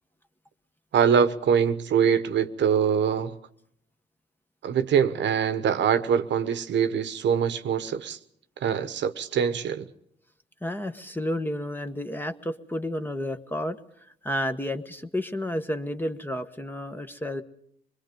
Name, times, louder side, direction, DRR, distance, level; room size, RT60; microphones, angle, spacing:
voice 1, 0.9-3.4 4.6-8.2 8.6-9.9, right 7 dB, 65° right, 1.1 m, -23 dB
voice 2, 10.6-17.4, left 1 dB, 10° left, 1.2 m, -31 dB
25.0 x 21.5 x 5.3 m
cardioid pair, 90°, 20 cm